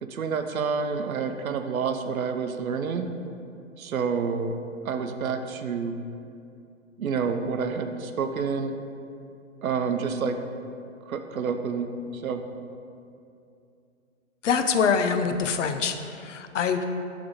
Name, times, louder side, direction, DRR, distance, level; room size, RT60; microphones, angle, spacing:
voice 1, 0.0-3.1 3.8-4.6 4.8-6.0 7.0-8.8 9.6-10.4 11.1-12.4, right 5 dB, 85° right, 7 dB, 0.6 m, -28 dB
voice 2, 14.4-16.8, left 6 dB, 65° left, 7 dB, 0.6 m, -25 dB
5.9 x 3.5 x 5.0 m, 2.5 s
hypercardioid pair, 140°, 40 cm